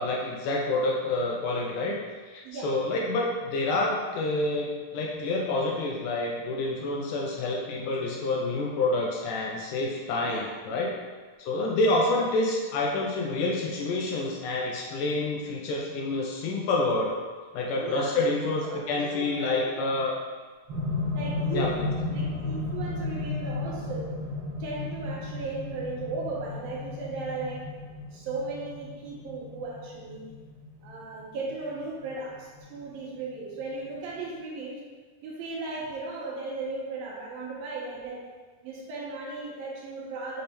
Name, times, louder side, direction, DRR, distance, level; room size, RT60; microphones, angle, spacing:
voice 1, 0.0-2.0 2.3-10.9 11.4-17.1 17.5-20.1 21.5-21.9, left 2 dB, 80° left, -2 dB, 2.0 m, -28 dB
voice 2, 17.8-19.7 21.1-24.2 24.6-27.6 28.1-30.3 30.8-34.8 35.2-38.2 38.6-40.4, right 3 dB, 80° right, -4 dB, 2.9 m, -36 dB
sound 1, 20.7-32.8 33.8-33.9, left 3 dB, 50° right, 1.6 m, -34 dB
6.6 x 3.4 x 4.3 m, 1.4 s
omnidirectional pair, 4.1 m